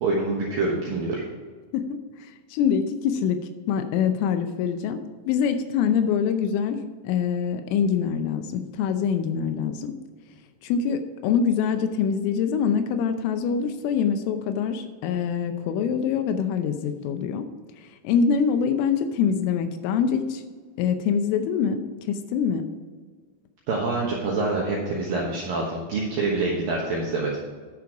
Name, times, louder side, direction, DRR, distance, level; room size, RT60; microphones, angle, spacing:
voice 1, 0.0-1.2 23.7-27.3, right 3 dB, 75° right, -3 dB, 2.1 m, -26 dB
voice 2, 1.7-3.4 3.7-5.0 5.3-6.8 7.0-9.9 10.6-17.4 18.0-20.4 20.8-21.8 22.1-22.7, left 7 dB, 80° left, 7 dB, 3.2 m, -24 dB
10.5 x 6.2 x 4.8 m, 1.5 s
omnidirectional pair, 5.9 m